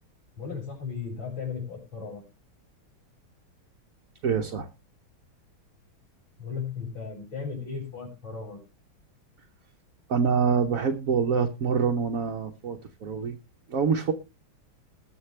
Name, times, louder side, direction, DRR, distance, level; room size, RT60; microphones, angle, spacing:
voice 1, 0.4-2.2 6.4-8.6, left 6 dB, 70° left, -1 dB, 6.9 m, -36 dB
voice 2, 4.2-4.7 10.1-13.4 13.7-14.1, right 6 dB, 50° right, 3 dB, 1.1 m, -25 dB
20.5 x 6.8 x 3.3 m, 0.26 s
omnidirectional pair, 2.3 m